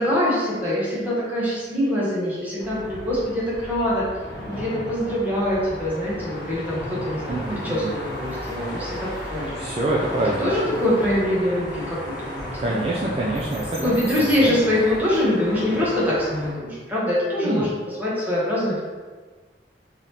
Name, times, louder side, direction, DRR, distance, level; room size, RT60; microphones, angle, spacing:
voice 1, 0.0-4.1 4.4-9.7 10.4-12.8 13.8-18.8, left 1 dB, 10° right, -8 dB, 1.0 m, -24 dB
sound 1, 2.6-16.5, left 1 dB, 20° left, 1.0 m, -35 dB
voice 2, 7.3-7.9 9.5-10.5 12.6-14.6 17.4-17.7, right 2 dB, 30° right, -5 dB, 0.3 m, -26 dB
3.8 x 3.2 x 2.9 m, 1.4 s
head